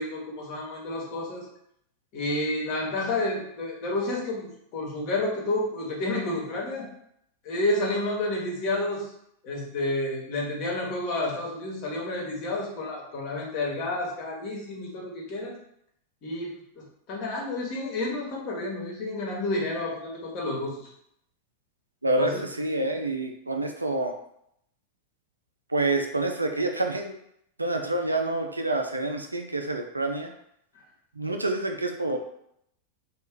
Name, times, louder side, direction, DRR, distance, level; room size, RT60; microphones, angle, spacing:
voice 1, 0.0-1.4 2.1-6.9 7.4-9.1 9.4-15.6 16.2-20.9 22.2-22.4, left 2 dB, 40° left, -2 dB, 1.1 m, -30 dB
voice 2, 22.0-24.2 25.7-27.2 27.6-30.3 31.1-32.2, right 2 dB, 80° right, 4 dB, 0.4 m, -27 dB
3.2 x 2.4 x 3.7 m, 0.73 s
figure-of-eight pair, 90°, 0 cm